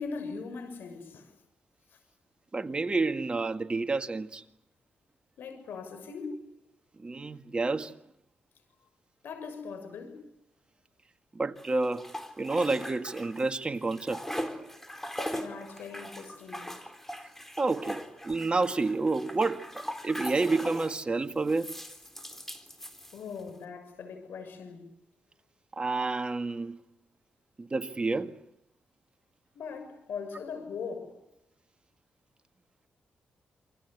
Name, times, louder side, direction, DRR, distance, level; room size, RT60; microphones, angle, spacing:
voice 1, 0.0-1.4 1.9-2.0 5.4-6.5 9.2-10.3 15.3-16.8 23.1-24.9 29.5-31.2, left 5 dB, 80° left, 6.7 m, -40 dB
voice 2, 2.5-4.4 7.0-7.9 11.3-12.1 12.4-14.2 17.6-19.6 20.0-21.7 25.8-26.8 27.6-28.3, right 3 dB, 30° right, 1.9 m, -29 dB
sound 1, 11.6-13.5 13.8-21.0 21.5-23.5, equal, 10° left, 3.8 m, -40 dB
28.5 x 24.5 x 8.3 m
cardioid pair, 75°, 4 cm